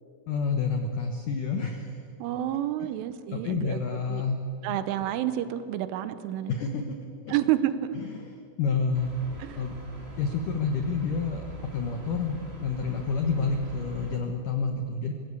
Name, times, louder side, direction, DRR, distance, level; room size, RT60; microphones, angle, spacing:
voice 1, 0.3-2.0 3.3-4.4 4.7-4.8 6.5-7.0 7.3-7.4 8.3-9.1 9.6-9.8 10.2-11.4 11.7-15.1, left 5 dB, 80° left, 5 dB, 1.8 m, -29 dB
voice 2, 2.2-3.8 4.1-4.2 4.6-6.5 7.3-8.0 9.4-9.6, right 12 dB, 80° right, 12 dB, 3.3 m, -29 dB
sound 1, 8.9-14.2, right 2 dB, 25° right, 1.4 m, -43 dB
25.5 x 18.0 x 8.4 m, 2.5 s
omnidirectional pair, 5.8 m